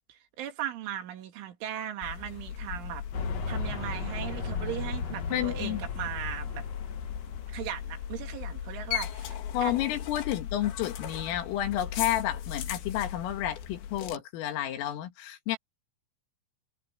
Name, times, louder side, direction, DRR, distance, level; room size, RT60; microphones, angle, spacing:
voice 1, 0.1-3.0 3.5-6.7 7.5-9.7, right 11 dB, 75° right, 4.7 m, -38 dB
sound 1, 2.0-14.2, left 9 dB, 65° left, 3.9 m, -38 dB
sound 2, 3.1-7.9, left 4 dB, 50° left, 2.2 m, -36 dB
voice 2, 5.3-5.8 9.5-15.6, left 12 dB, 85° left, 4.7 m, -31 dB
Piano, 5.3-9.8 11.0-11.6, equal, 5° right, 4.3 m, -50 dB
omnidirectional pair, 5.7 m